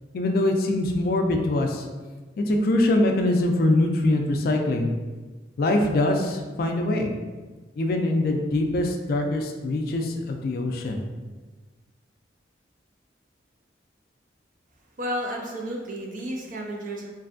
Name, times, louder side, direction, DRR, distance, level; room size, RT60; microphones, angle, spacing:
voice 1, 0.1-1.9 2.4-4.9 5.6-7.1 7.8-11.0, left 1 dB, 50° left, 3 dB, 0.3 m, -23 dB
voice 2, 15.0-17.1, equal, 45° right, 0 dB, 0.5 m, -32 dB
3.2 x 2.6 x 2.5 m, 1.3 s
head